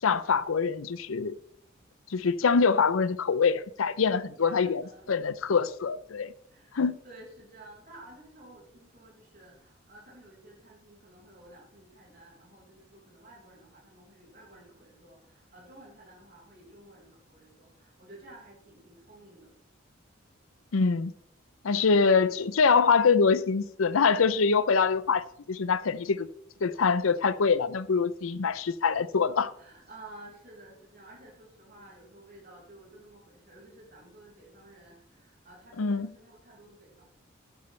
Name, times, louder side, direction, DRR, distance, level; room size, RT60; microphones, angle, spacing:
voice 1, 0.0-1.4 2.1-4.8 5.1-6.3 6.7-7.0 20.7-21.1 21.6-26.3 26.6-29.5 35.8-36.1, left 5 dB, 90° left, 0.6 m, -24 dB
voice 2, 4.4-5.1 6.5-19.5 29.6-37.0, right 1 dB, 45° right, 5.2 m, -52 dB
13.0 x 11.0 x 3.3 m
head